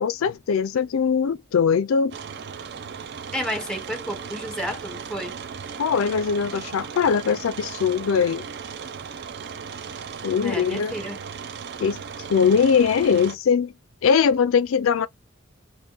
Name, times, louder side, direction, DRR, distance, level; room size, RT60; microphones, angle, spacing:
voice 1, 0.0-2.1 5.8-8.5 10.2-10.9 11.8-12.0 12.3-13.7 14.0-15.1, left 6 dB, 80° left, 0.4 m, -21 dB
sound 1, 2.1-13.4, right 6 dB, 50° right, 0.4 m, -37 dB
voice 2, 3.3-5.3 10.4-11.2, equal, 5° left, 0.8 m, -31 dB
3.5 x 2.2 x 2.4 m
head